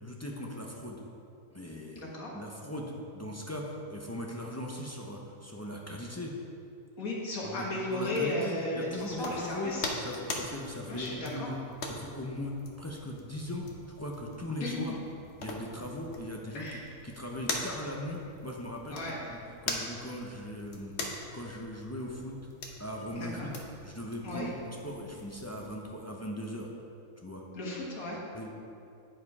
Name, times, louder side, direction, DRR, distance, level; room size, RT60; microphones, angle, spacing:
voice 1, 0.0-1.0 1.5-2.0 2.3-6.3 7.4-9.7 10.0-11.6 11.8-15.0 15.4-16.7 17.0-19.4 19.6-22.4 22.8-23.6 23.8-26.7 27.2-27.4 28.3-28.5, left 1 dB, 20° left, -1 dB, 0.4 m, -39 dB
voice 2, 2.0-2.3 7.0-9.9 10.9-11.5 14.6-15.0 16.5-16.8 18.9-19.3 23.2-23.5 24.2-24.5 27.5-28.2, left 1 dB, 75° left, -3 dB, 1.9 m, -35 dB
sound 1, 8.9-25.8, left 2 dB, 55° left, 1.1 m, -42 dB
9.6 x 4.9 x 4.8 m, 2.6 s
omnidirectional pair, 1.5 m